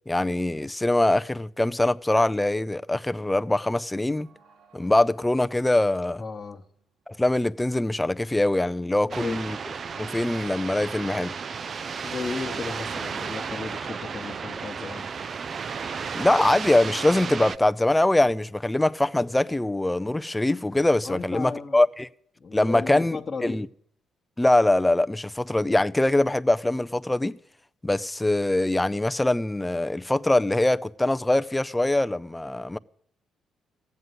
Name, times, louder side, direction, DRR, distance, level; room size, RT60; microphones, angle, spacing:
voice 1, 0.1-4.3 4.7-6.2 7.2-9.6 9.9-11.3 16.1-22.1 22.5-23.7 24.4-27.4 27.8-32.8, left 1 dB, 10° left, 0.5 m, -23 dB
sound 1, 3.3-9.3, right 4 dB, 85° right, 4.0 m, -62 dB
voice 2, 6.2-6.7 9.0-9.4 12.0-15.1 21.0-21.8 22.4-23.6, left 4 dB, 35° left, 1.2 m, -35 dB
sound 2, 9.1-17.6, right 6 dB, 45° right, 0.5 m, -33 dB
15.0 x 9.4 x 9.6 m
cardioid pair, 90°, 0 cm